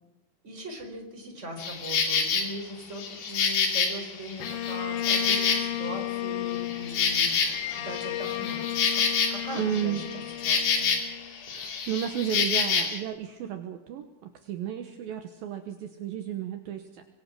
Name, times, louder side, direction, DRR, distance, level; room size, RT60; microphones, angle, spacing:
voice 1, 0.4-7.5 7.7-8.6 8.9-9.0 9.3-10.9, equal, 15° right, 2 dB, 4.3 m, -40 dB
Insect, 1.6-2.5 3.0-6.0 6.3-11.2 11.4-13.0, left 6 dB, 60° left, 4.6 m, -27 dB
Bowed string instrument, 4.4-11.7, left 13 dB, 75° left, 3.1 m, -34 dB
voice 2, 9.5-10.0 11.5-17.0, right 10 dB, 75° right, 6 dB, 2.2 m, -33 dB
25.5 x 20.5 x 6.2 m, 1.0 s
omnidirectional pair, 5.7 m